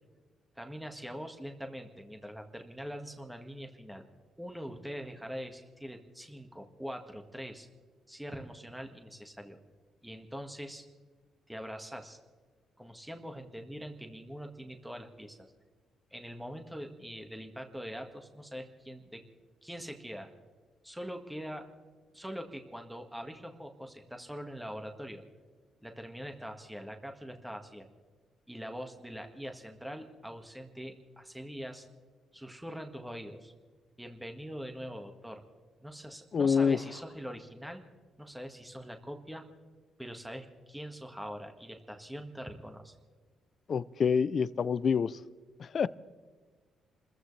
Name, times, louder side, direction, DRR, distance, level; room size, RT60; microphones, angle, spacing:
voice 1, 0.5-4.0 4.4-7.7 8.1-9.6 10.0-10.8 11.5-12.2 12.8-15.5 16.1-19.2 19.6-20.3 20.8-21.7 22.1-25.2 25.8-27.9 28.5-31.9 32.3-33.5 34.0-35.4 35.8-37.8 38.2-39.4 40.0-42.9, equal, 5° right, 4 dB, 1.8 m, -43 dB
voice 2, 36.3-36.8 43.7-45.2 45.6-45.9, left 6 dB, 50° left, 18 dB, 0.5 m, -27 dB
28.5 x 14.5 x 3.3 m, 1.5 s
cardioid pair, 80°, 0 cm